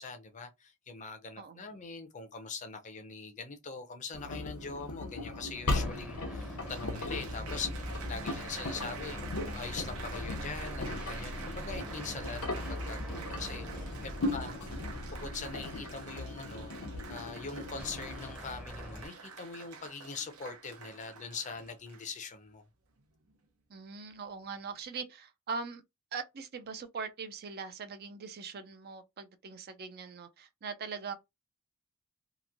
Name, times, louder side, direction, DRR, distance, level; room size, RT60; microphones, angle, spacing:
voice 1, 0.0-9.2 9.5-12.4 12.7-14.7 15.1-16.7 17.1-22.6, left 4 dB, 35° left, 0.6 m, -42 dB
Engine, 4.1-18.3, left 2 dB, 80° left, 0.8 m, -39 dB
sound 1, 5.7-16.0 17.8-19.1, equal, 5° right, 0.6 m, -43 dB
Applause, 6.3-22.3 23.0-23.3, right 5 dB, 75° right, 0.7 m, -48 dB
voice 2, 14.2-14.5 23.7-25.8 26.1-31.1, right 5 dB, 45° right, 0.4 m, -41 dB
2.9 x 2.6 x 2.4 m
head